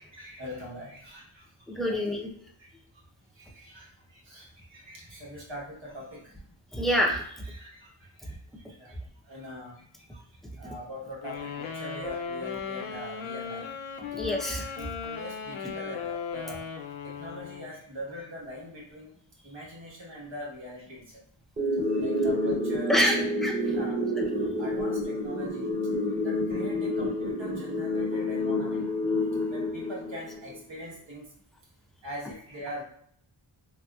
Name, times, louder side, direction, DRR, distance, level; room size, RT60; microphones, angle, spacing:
voice 1, 0.0-2.1 2.6-2.7 3.3-6.4 7.4-9.0 9.2-10.2 10.5-13.7 14.7-19.1 19.4-21.2 22.0-23.3 23.6-24.0 24.6-25.7 26.2-28.9 29.5-31.3 32.0-32.8, equal, 65° right, -3 dB, 1.2 m, -42 dB
voice 2, 1.7-2.3 6.7-7.3 14.1-14.7 22.9-23.5, equal, ahead, -2 dB, 0.5 m, -26 dB
sound 1, 11.2-17.8, left 6 dB, 75° left, 0.5 m, -37 dB
sound 2, 21.6-30.6, left 1 dB, 20° right, 1.2 m, -29 dB
3.4 x 2.9 x 2.3 m, 0.63 s
wide cardioid pair, 95°, 49 cm